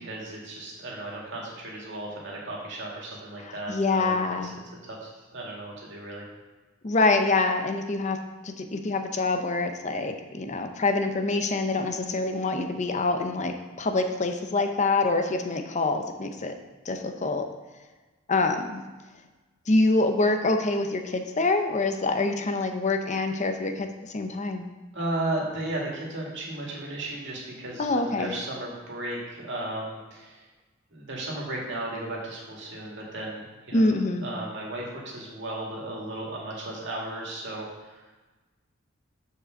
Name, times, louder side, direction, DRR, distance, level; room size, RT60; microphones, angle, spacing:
voice 1, 0.0-6.3 24.9-30.4 30.9-38.0, right 1 dB, 65° right, -3 dB, 2.2 m, -35 dB
voice 2, 3.4-4.6 6.8-8.2 8.4-16.5 16.9-17.5 18.3-18.8 19.7-23.9 24.1-24.7 27.8-28.3 33.7-34.3, left 3 dB, 35° left, 6 dB, 0.7 m, -25 dB
6.7 x 5.1 x 6.4 m, 1.2 s
head